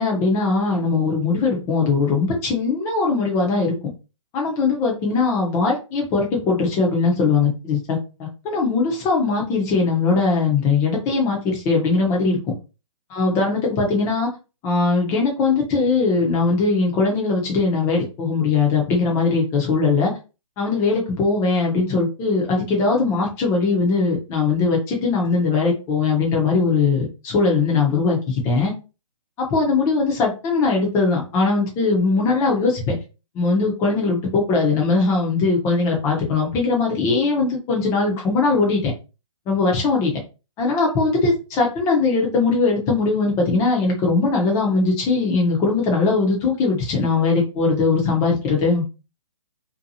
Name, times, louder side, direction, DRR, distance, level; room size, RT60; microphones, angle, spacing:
voice 1, 0.0-3.7 4.3-12.4 13.1-14.3 14.6-20.1 20.6-28.7 29.4-33.0 33.3-38.9 39.5-40.1 40.6-48.9, left 4 dB, 15° left, -1 dB, 0.6 m, -20 dB
2.6 x 2.2 x 2.7 m, 0.31 s
hypercardioid pair, 155°, 17 cm